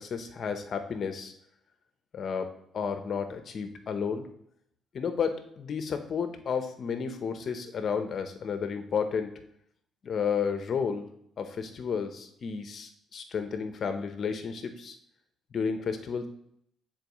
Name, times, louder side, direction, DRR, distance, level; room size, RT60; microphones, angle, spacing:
voice 1, 0.0-1.3 2.1-2.5 2.7-4.2 4.9-9.3 10.0-11.1 11.4-14.9 15.5-16.3, left 6 dB, 55° left, 7 dB, 1.0 m, -32 dB
9.6 x 4.4 x 3.1 m, 0.71 s
cardioid pair, 90°, 0 cm